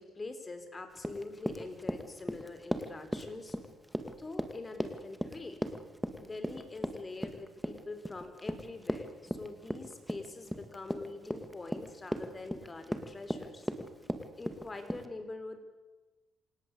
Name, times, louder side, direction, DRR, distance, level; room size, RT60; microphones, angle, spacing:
voice 1, 0.0-3.6 4.2-5.6 6.2-13.7 14.4-15.6, left 3 dB, 25° left, 8 dB, 4.3 m, -44 dB
Run, 1.0-15.1, equal, ahead, 2.4 m, -37 dB
28.0 x 18.0 x 8.5 m, 1.1 s
cardioid pair, 90°, 0 cm